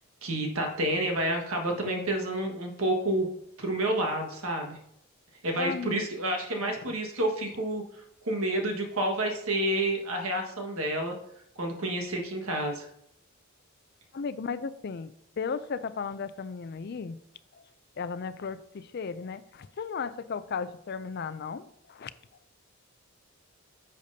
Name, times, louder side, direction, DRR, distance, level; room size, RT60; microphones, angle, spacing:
voice 1, 0.2-3.3 3.6-4.8 5.4-7.8 8.2-11.1 11.6-12.9, right 1 dB, 75° right, 2 dB, 1.6 m, -29 dB
voice 2, 5.6-6.1 6.6-6.7 14.1-17.2 17.5-17.6 18.0-22.1, left 5 dB, 45° left, 13 dB, 0.4 m, -35 dB
10.5 x 6.5 x 2.8 m, 0.75 s
head